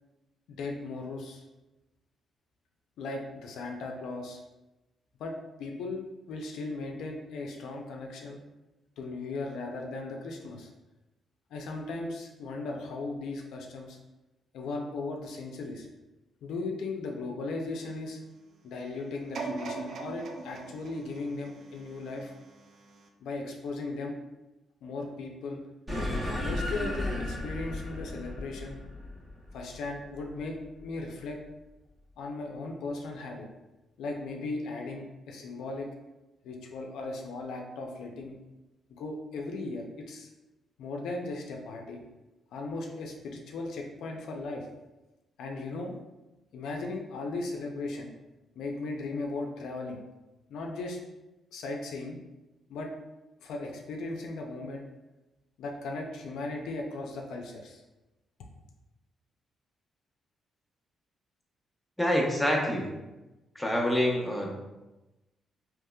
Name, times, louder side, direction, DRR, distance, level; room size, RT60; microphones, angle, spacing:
voice 1, 0.5-1.4 3.0-4.4 5.2-6.0 6.3-8.4 9.0-10.7 11.5-14.0 14.5-15.9 16.4-18.2 18.6-22.3 23.2-24.2 24.8-25.6 26.1-28.8 29.5-31.4 32.2-33.5 34.0-35.9 36.4-38.4 39.0-40.3 40.8-42.0 42.5-44.7 45.4-45.9 46.5-48.1 48.6-50.0 50.5-51.0 51.5-52.2 52.7-52.9 53.4-54.8 55.6-57.8, left 3 dB, 80° left, 1 dB, 0.4 m, -37 dB
sound 1, 19.3-22.4 23.0-23.1, right 3 dB, 65° right, 0.4 m, -39 dB
sound 2, 25.9-30.6, left 1 dB, 25° right, 1.1 m, -34 dB
voice 2, 62.0-62.9 63.6-64.5, left 1 dB, 5° left, -2 dB, 0.7 m, -26 dB
3.5 x 3.0 x 2.2 m, 1.0 s
cardioid pair, 75°, 0 cm